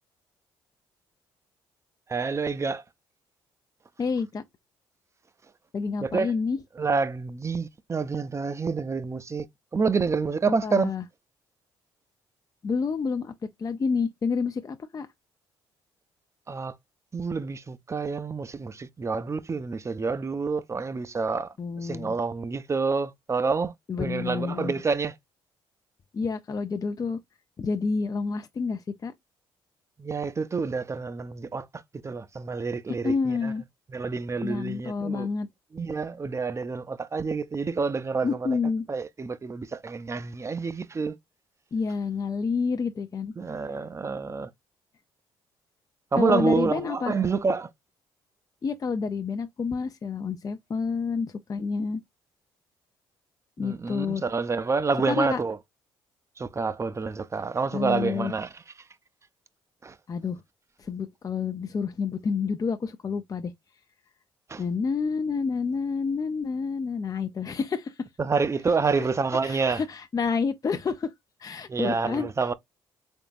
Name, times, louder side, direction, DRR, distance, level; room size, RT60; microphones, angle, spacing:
voice 1, 2.1-2.8 6.0-6.3 6.8-9.5 9.7-10.9 16.5-16.7 17.1-25.1 30.0-31.7 32.0-33.5 33.9-35.3 35.7-38.6 38.9-41.2 43.4-44.5 46.1-47.7 53.6-55.6 56.4-58.5 59.8-60.0 64.5-64.6 68.2-69.8 71.7-72.5, right 4 dB, 30° right, 0.6 m, -28 dB
voice 2, 4.0-4.4 5.7-6.6 10.6-11.0 12.6-13.3 13.6-15.1 21.6-22.1 23.9-24.7 26.1-27.2 27.6-29.1 33.0-33.6 34.4-35.5 38.2-38.9 41.7-43.3 46.2-47.2 48.6-52.0 53.6-54.2 55.1-55.4 57.7-58.3 60.1-60.4 60.8-63.5 64.6-68.1 69.0-69.1 69.4-71.1 71.4-72.3, left 5 dB, 35° left, 0.5 m, -29 dB
3.7 x 3.6 x 2.5 m
supercardioid pair, 60°, 10 cm